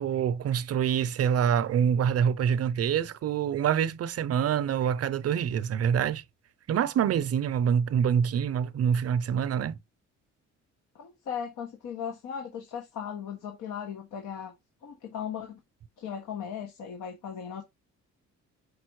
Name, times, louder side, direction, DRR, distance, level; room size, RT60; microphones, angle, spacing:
voice 1, 0.0-6.2 6.7-9.8, right 8 dB, 55° right, 0.6 m, -26 dB
voice 2, 11.0-14.5 14.8-15.6 16.0-17.6, left 7 dB, 90° left, 1.4 m, -37 dB
5.1 x 4.0 x 4.7 m
cardioid pair, 90°, 30 cm